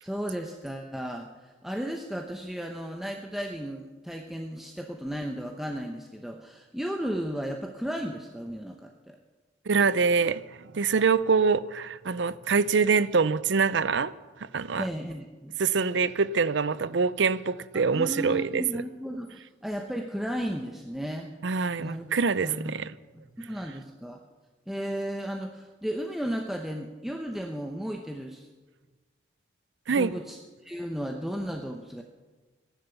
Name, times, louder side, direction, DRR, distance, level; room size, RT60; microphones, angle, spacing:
voice 1, 0.0-9.2 14.8-15.5 17.9-21.3 21.8-22.0 22.4-22.8 23.1-24.2 24.7-28.5 29.9-32.0, equal, ahead, 0.8 m, -34 dB
voice 2, 9.7-10.4 10.7-14.1 14.5-14.9 15.6-18.8 21.4-22.9 29.9-30.2, right 5 dB, 70° right, 0.5 m, -25 dB
14.5 x 11.0 x 7.0 m
head